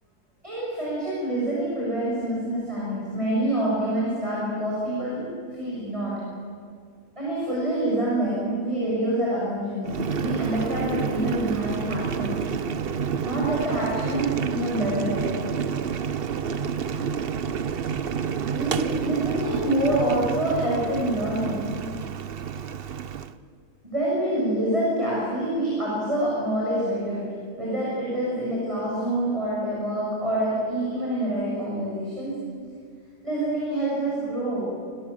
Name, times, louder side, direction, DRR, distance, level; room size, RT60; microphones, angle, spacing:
voice 1, 0.4-6.4 7.2-12.4 13.2-15.4 18.5-21.8 23.8-32.5 33.2-34.7, right 1 dB, 20° right, -6 dB, 7.7 m, -26 dB
Boiling, 9.8-23.3, right 7 dB, 50° right, 0.9 m, -29 dB
29.0 x 20.0 x 8.8 m, 2.2 s
omnidirectional pair, 1.5 m